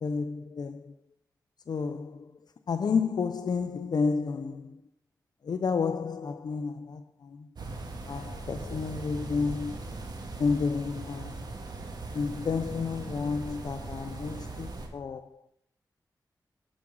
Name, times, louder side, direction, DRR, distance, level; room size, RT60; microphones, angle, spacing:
voice 1, 0.0-0.9 1.7-2.3 2.7-4.8 5.4-7.5 8.1-9.8 10.4-11.5 12.1-15.4, left 5 dB, 70° left, 0.5 m, -31 dB
sound 1, 7.6-14.9, right 2 dB, 70° right, 1.7 m, -39 dB
11.0 x 6.1 x 6.2 m
wide cardioid pair, 80°, 7 cm